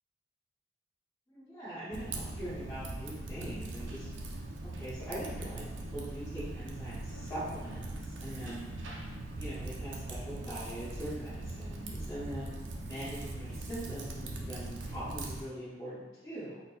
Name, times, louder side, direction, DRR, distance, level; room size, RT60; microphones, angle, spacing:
voice 1, 1.3-4.1 4.6-5.7 5.9-8.7 9.4-12.5 12.8-16.6, equal, 20° left, -13 dB, 1.5 m, -42 dB
Typing, 1.9-15.4, right 2 dB, 70° right, 0.5 m, -41 dB
3.9 x 2.1 x 3.9 m, 1.2 s
head